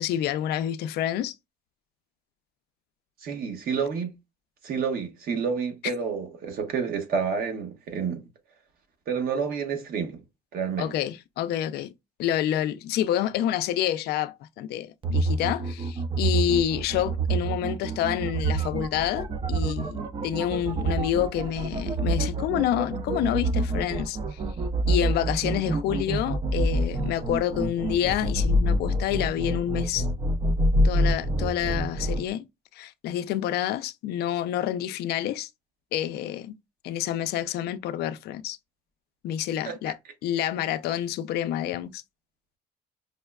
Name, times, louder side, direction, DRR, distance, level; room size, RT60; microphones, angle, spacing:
voice 1, 0.0-1.3 10.8-11.9 12.2-24.4 24.9-30.1 30.8-32.5 32.7-35.5 35.9-36.5 36.8-38.6 39.2-40.0 40.2-42.0, left 11 dB, 75° left, 0.4 m, -28 dB
voice 2, 3.2-4.1 4.6-8.2 9.1-10.2 10.5-10.9 39.7-39.8, right 6 dB, 60° right, 1.1 m, -29 dB
sound 1, 15.0-32.2, right 1 dB, 30° right, 0.4 m, -27 dB
5.3 x 2.1 x 2.3 m
cardioid pair, 110°, 17 cm